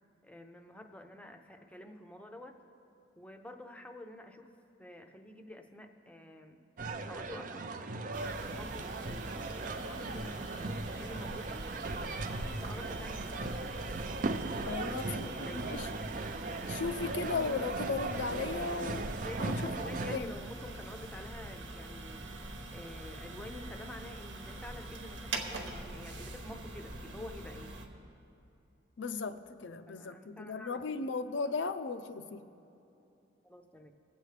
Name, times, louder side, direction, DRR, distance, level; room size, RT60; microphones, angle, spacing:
voice 1, 0.2-2.6 3.2-4.5 4.8-6.6 7.1-10.3 10.9-11.7 12.3-13.8 14.2-16.0 19.2-22.2 22.7-27.8 29.9-31.0 33.4-33.9, left 1 dB, 5° left, 0.6 m, -49 dB
sound 1, 6.8-20.2, right 3 dB, 40° right, 0.4 m, -38 dB
sound 2, 8.1-27.8, right 2 dB, 75° right, 1.1 m, -44 dB
voice 2, 14.6-15.9 16.7-19.1 19.4-19.7 20.1-20.3 29.0-32.4, left 4 dB, 70° left, 0.5 m, -36 dB
22.0 x 8.0 x 3.3 m
head